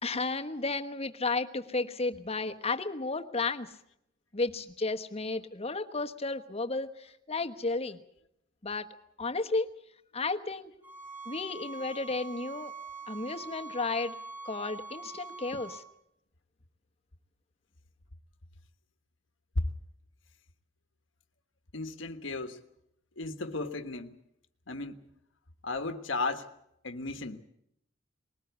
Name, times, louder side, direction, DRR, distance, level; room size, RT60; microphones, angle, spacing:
voice 1, 0.0-3.7 4.3-8.0 8.6-8.9 9.2-9.7 10.1-10.7 11.3-12.7 13.1-14.1 14.4-15.8, left 3 dB, 30° left, 7 dB, 1.2 m, -33 dB
sound 1, 10.8-15.8, right 3 dB, 10° right, 3.1 m, -44 dB
voice 2, 21.7-22.6 23.2-24.2 24.7-25.0 25.6-26.5 26.8-27.4, left 3 dB, 70° left, 7 dB, 1.4 m, -35 dB
21.5 x 19.0 x 8.2 m, 0.77 s
head